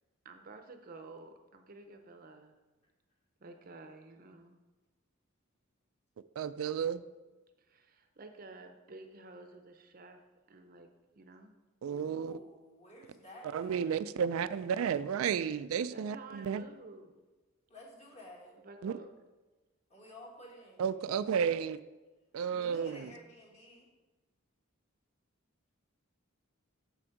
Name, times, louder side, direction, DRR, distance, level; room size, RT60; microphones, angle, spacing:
voice 1, 0.2-2.6 3.4-4.6 7.6-10.2 10.5-10.9 11.2-11.5 15.9-17.1 18.6-19.1 22.5-23.3, right 3 dB, 45° right, 6 dB, 0.6 m, -51 dB
voice 2, 6.4-7.0 11.8-12.4 13.5-16.6 18.8-18.9 20.8-21.8 22.3-23.1, right 7 dB, 80° right, 13 dB, 0.3 m, -32 dB
voice 3, 11.8-13.9 17.7-18.5 19.9-20.8 22.6-23.9, left 1 dB, 30° left, -3 dB, 1.8 m, -53 dB
6.9 x 6.2 x 4.5 m, 1.2 s
head